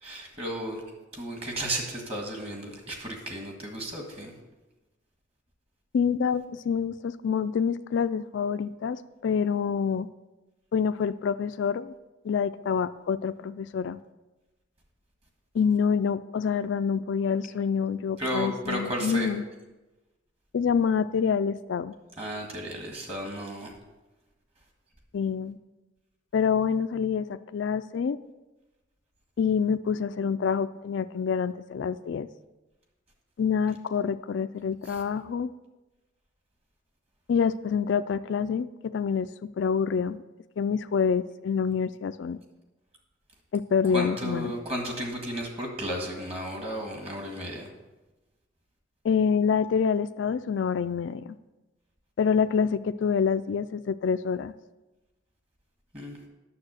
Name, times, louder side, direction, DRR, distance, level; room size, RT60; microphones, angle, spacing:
voice 1, 0.0-0.8 1.1-4.3 18.2-19.3 22.2-23.7 34.9-35.0 43.8-47.7 55.9-56.2, right 1 dB, 30° right, 2 dB, 1.7 m, -34 dB
voice 2, 5.9-10.1 10.7-11.9 12.2-14.0 15.5-19.4 20.5-21.9 25.1-25.6 26.3-28.2 29.4-32.3 33.4-35.5 37.3-40.2 40.6-42.4 43.5-44.5 49.0-51.4 52.2-54.5, left 6 dB, 75° left, 13 dB, 0.3 m, -27 dB
9.6 x 6.9 x 6.4 m, 1.1 s
head